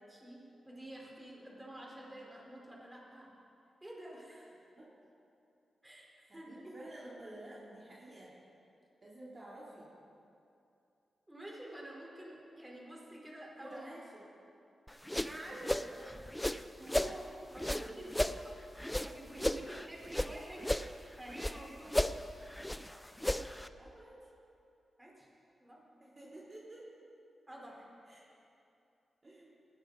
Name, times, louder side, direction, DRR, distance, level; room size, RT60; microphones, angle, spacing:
voice 1, 0.7-3.3 3.8-4.6 5.8-6.8 11.3-13.9 15.2-15.7 16.8-18.1 18.4-18.5 19.0-20.7 21.2-22.0 25.0-25.3 25.6-25.8 27.5-27.9, right 1 dB, 15° right, -3 dB, 4.4 m, -49 dB
voice 2, 6.3-8.3 9.0-9.9 13.6-14.2 15.4-16.3 17.7-18.5 19.5-19.6 23.8-24.3 26.0-26.9 28.1-28.4 29.2-29.5, right 1 dB, 40° right, -7 dB, 3.5 m, -51 dB
sound 1, 14.9-17.2 17.6-20.3 20.6-21.6 21.9-23.7, left 1 dB, 10° left, 0.6 m, -34 dB
19.5 x 16.0 x 4.1 m, 2.7 s
cardioid pair, 70°, 0 cm